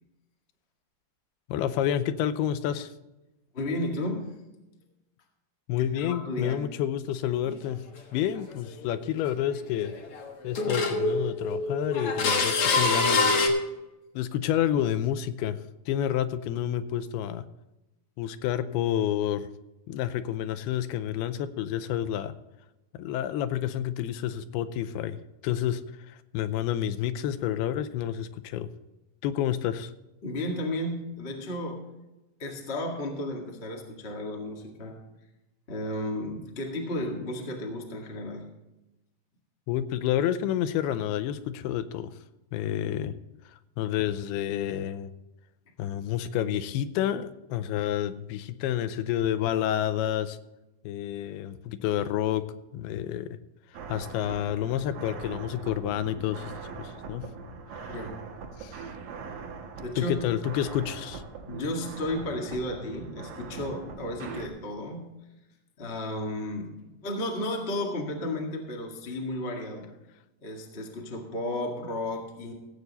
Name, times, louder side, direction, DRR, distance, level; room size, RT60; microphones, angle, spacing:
voice 1, 1.5-2.9 5.7-7.8 8.1-10.0 10.4-13.6 14.2-15.6 15.9-17.4 18.2-19.5 19.9-22.3 23.0-25.2 25.4-25.8 26.1-28.7 29.2-29.9 39.7-42.1 42.5-43.1 43.8-45.1 45.8-50.4 50.8-52.4 52.7-53.4 53.9-56.5 56.8-57.3 57.8-57.9 58.6-58.8 60.0-61.2, left 11 dB, 85° left, 12 dB, 2.6 m, -29 dB
voice 2, 3.5-4.4 5.8-6.6 30.2-31.9 32.4-35.0 35.7-38.5 57.9-58.2 59.8-60.2 61.5-65.1 65.8-69.9 70.4-72.5, left 1 dB, 35° left, 0 dB, 0.9 m, -33 dB
sound 1, 7.5-7.6 8.9-9.0 9.4-10.2 10.5-13.5, left 3 dB, 60° left, 1.5 m, -25 dB
sound 2, 53.7-64.5, right 5 dB, 70° right, 2.9 m, -41 dB
16.5 x 8.2 x 4.1 m, 0.98 s
omnidirectional pair, 4.5 m